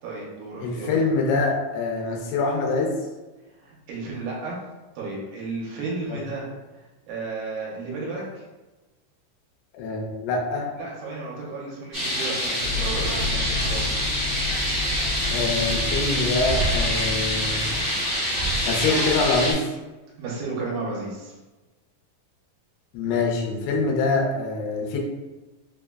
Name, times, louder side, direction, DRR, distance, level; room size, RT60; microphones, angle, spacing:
voice 1, 0.0-1.0 3.6-4.6 5.0-8.4 10.8-13.9 20.2-21.4, right 3 dB, 80° right, -4 dB, 2.3 m, -33 dB
voice 2, 0.6-3.0 6.3-6.4 9.7-10.7 15.3-17.7 18.7-19.7 22.9-25.0, left 3 dB, 85° left, -1 dB, 2.4 m, -25 dB
sound 1, 11.9-19.5, equal, 55° right, 0.7 m, -26 dB
sound 2, 12.6-17.8, left 3 dB, 60° left, 1.6 m, -31 dB
5.4 x 2.1 x 2.2 m, 1.1 s
omnidirectional pair, 4.0 m